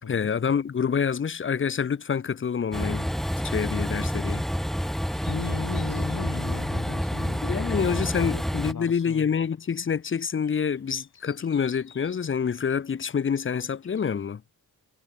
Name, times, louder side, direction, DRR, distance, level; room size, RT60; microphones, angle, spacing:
voice 1, 0.1-3.1 3.4-4.5 7.4-14.4, left 7 dB, 35° left, 0.5 m, -27 dB
Train, 2.7-8.7, equal, ahead, 1.1 m, -28 dB
sound 1, 5.1-14.2, left 7 dB, 90° left, 6.0 m, -57 dB
voice 2, 5.2-9.3, left 6 dB, 60° left, 4.0 m, -37 dB
wide cardioid pair, 95°, 37 cm